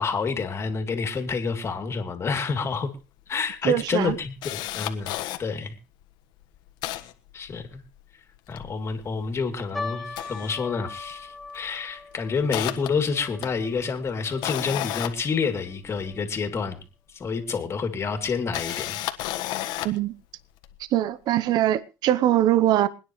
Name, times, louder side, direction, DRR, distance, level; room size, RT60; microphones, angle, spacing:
voice 1, 0.0-2.9 3.3-4.3 4.7-5.1 5.4-5.7 7.3-7.8 8.5-16.8 17.1-19.0, left 5 dB, 35° left, 2.9 m, -28 dB
Camera, 2.8-2.9 3.2-3.3 3.7-5.4 6.0-6.1 6.4-8.0 8.3-9.6 10.0-11.1 11.4-11.7 12.1-16.1 17.2-17.3 18.3-20.1 20.6-20.8, left 15 dB, 70° left, 1.4 m, -33 dB
voice 2, 3.7-4.2 19.8-20.1 20.9-22.9, right 12 dB, 60° right, 0.9 m, -22 dB
sound 1, 9.7-16.2 16.5-16.6 17.4-17.6 18.2-18.3 18.7-18.9, left 3 dB, ahead, 2.2 m, -41 dB
26.5 x 9.9 x 3.2 m
supercardioid pair, 90°, 8 cm